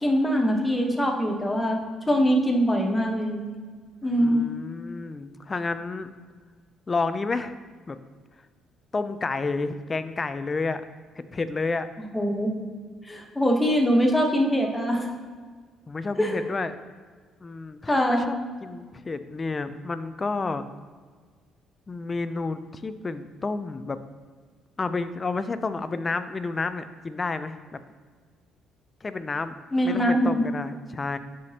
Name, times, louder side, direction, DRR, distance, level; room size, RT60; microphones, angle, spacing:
voice 1, 0.0-3.4 4.0-4.4 12.1-12.5 13.1-15.1 16.2-16.3 17.9-18.3 29.7-30.5, equal, 10° left, 1 dB, 1.0 m, -23 dB
voice 2, 4.2-6.1 6.9-7.6 7.9-8.0 8.9-10.8 11.2-11.9 15.9-16.7 17.4-20.6 21.9-24.0 24.8-27.8 29.0-29.6 29.8-31.2, left 3 dB, 30° left, 11 dB, 0.4 m, -30 dB
9.3 x 4.9 x 2.9 m, 1.5 s
cardioid pair, 100°, 0 cm